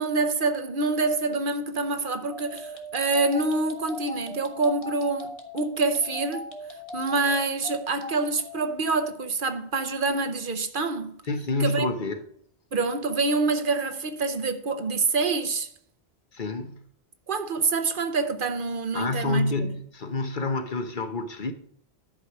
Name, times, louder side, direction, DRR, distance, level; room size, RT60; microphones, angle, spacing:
voice 1, 0.0-6.5 6.9-11.2 11.6-11.9 12.7-15.7 17.3-19.7, right 3 dB, 55° right, 1.0 m, -26 dB
sound 1, 2.3-8.6, left 1 dB, 30° left, 1.5 m, -39 dB
voice 2, 11.3-12.2 16.3-16.8 18.9-21.5, left 2 dB, 50° left, 1.1 m, -28 dB
11.5 x 4.9 x 6.0 m
omnidirectional pair, 1.1 m